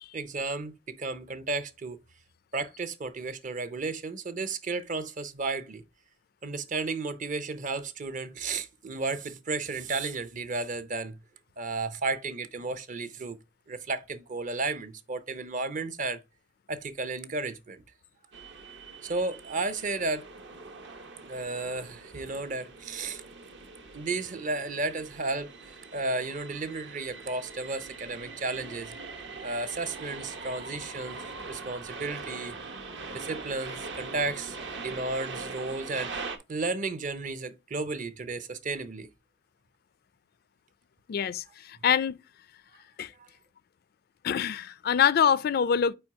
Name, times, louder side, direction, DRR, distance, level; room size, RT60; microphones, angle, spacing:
voice 1, 0.1-2.0 2.5-5.8 6.4-11.2 11.6-13.4 13.7-16.2 16.7-17.8 19.0-20.2 21.2-23.2 23.9-25.5 25.9-28.9 29.4-32.5 33.1-36.1 36.5-39.1 43.2-43.3, right 3 dB, 45° right, 0.6 m, -33 dB
sound 1, 18.3-36.4, right 3 dB, 65° right, 0.9 m, -42 dB
voice 2, 41.1-42.2 43.0-43.1 44.2-45.9, left 8 dB, 55° left, 0.3 m, -25 dB
4.6 x 4.4 x 4.6 m
head